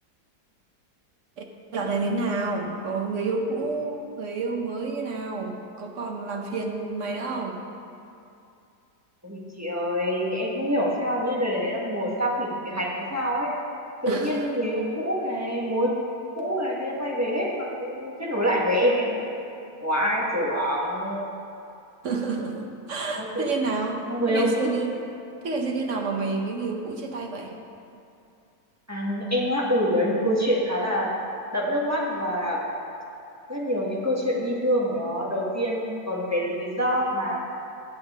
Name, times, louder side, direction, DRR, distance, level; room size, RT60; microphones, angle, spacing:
voice 1, 1.7-7.6 14.1-14.5 22.0-25.0 25.4-27.5, right 3 dB, 55° right, 2 dB, 1.3 m, -29 dB
voice 2, 9.2-13.5 14.0-15.9 16.3-19.2 19.8-21.2 23.2-23.5 24.1-24.7 28.9-31.1 31.5-32.6 33.5-37.4, equal, 10° right, -4 dB, 1.3 m, -26 dB
16.0 x 7.7 x 3.6 m, 2.6 s
omnidirectional pair, 1.7 m